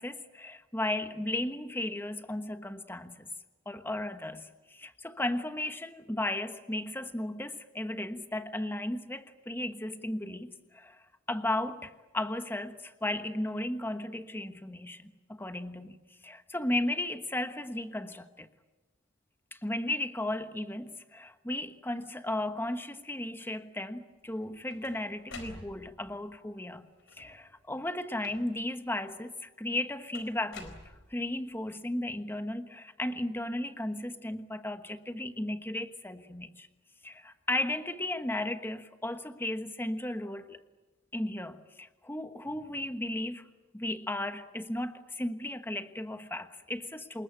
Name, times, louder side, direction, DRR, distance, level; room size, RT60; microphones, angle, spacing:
voice 1, 0.0-3.3 3.6-16.0 16.2-18.5 19.5-26.9 27.2-30.8 31.1-36.7 37.0-40.6 41.1-43.4 43.7-47.2, left 1 dB, 10° left, 1.2 m, -35 dB
sound 1, 24.3-26.1 27.0-27.5 28.2-28.8 30.1-31.4, left 3 dB, 80° left, 4.1 m, -49 dB
27.0 x 21.0 x 8.9 m
head